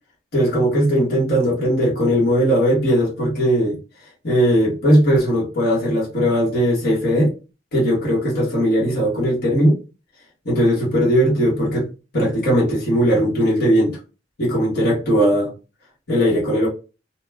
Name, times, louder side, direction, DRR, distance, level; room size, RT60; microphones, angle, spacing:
voice 1, 0.3-3.8 4.2-7.3 7.7-9.8 10.4-11.9 12.1-14.0 14.4-15.5 16.1-16.7, equal, 55° left, 1.4 m, -18 dB
2.9 x 2.2 x 3.4 m
head